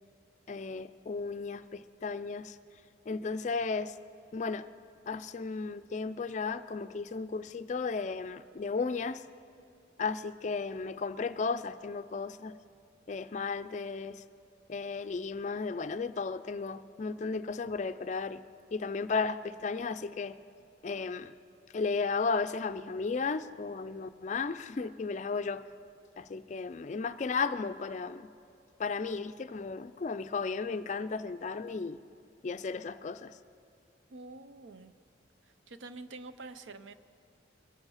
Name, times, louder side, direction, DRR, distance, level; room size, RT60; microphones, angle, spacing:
voice 1, 0.5-2.6 3.1-3.9 4.3-4.7 5.1-9.2 10.0-12.5 13.1-14.2 14.7-18.4 18.7-20.4 20.8-21.3 21.7-25.6 26.2-28.3 28.8-32.0 32.4-33.4, left 4 dB, 40° left, 12 dB, 0.3 m, -34 dB
voice 2, 34.1-34.9 35.7-36.9, right 3 dB, 80° right, 11 dB, 0.6 m, -46 dB
22.5 x 8.0 x 5.6 m, 2.5 s
head